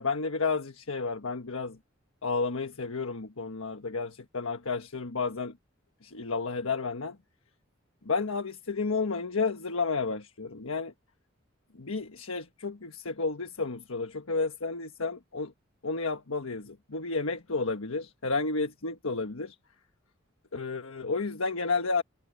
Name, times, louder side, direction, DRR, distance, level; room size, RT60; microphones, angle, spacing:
voice 1, 0.0-1.8 2.2-5.6 6.0-7.2 8.0-10.9 11.7-15.5 15.8-19.5 20.5-22.0, left 4 dB, 90° left, 1.3 m, -31 dB
head